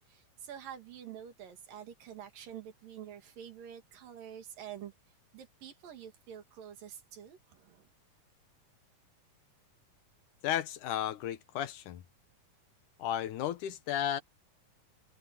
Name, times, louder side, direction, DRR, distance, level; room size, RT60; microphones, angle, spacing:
voice 1, 0.1-4.9 5.3-7.9, right 9 dB, 85° right, 4.1 m, -47 dB
voice 2, 10.4-12.0 13.0-14.2, left 11 dB, 70° left, 2.4 m, -33 dB
omnidirectional pair, 3.8 m